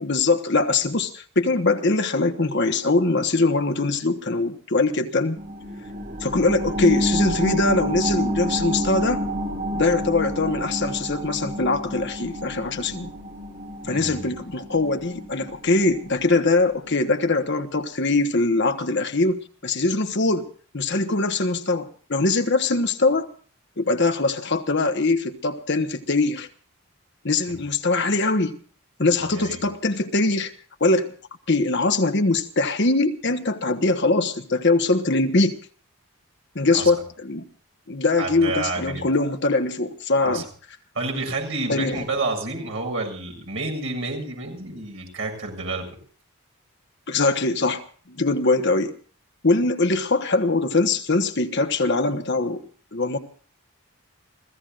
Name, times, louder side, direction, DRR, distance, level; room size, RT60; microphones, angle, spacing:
voice 1, 0.0-5.4 6.2-9.3 9.7-13.1 13.9-20.5 20.7-23.3 23.8-26.5 27.2-28.6 29.0-30.5 30.8-31.1 31.5-35.6 36.5-37.5 37.9-40.4 41.7-42.0 47.1-47.8 48.1-48.9 49.4-52.6 52.9-53.2, left 3 dB, 50° left, 1.2 m, -22 dB
sound 1, 5.4-16.5 16.9-17.0, equal, 40° right, 7.6 m, -29 dB
voice 2, 13.8-14.2 29.3-29.6 36.7-36.9 38.2-39.1 40.2-40.4 40.9-45.9, right 3 dB, 60° right, 7.2 m, -29 dB
30.0 x 16.5 x 2.5 m
head